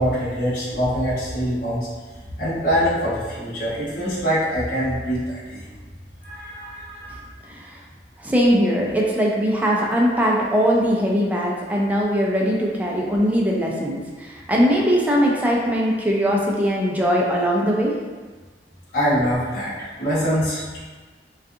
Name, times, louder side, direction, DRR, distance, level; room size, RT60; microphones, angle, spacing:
voice 1, 0.0-1.9 2.4-5.7 6.2-7.2 18.9-20.8, equal, 55° left, -10 dB, 0.9 m, -24 dB
voice 2, 8.2-17.9, equal, 10° right, -3 dB, 0.3 m, -20 dB
2.4 x 2.4 x 2.6 m, 1.4 s
head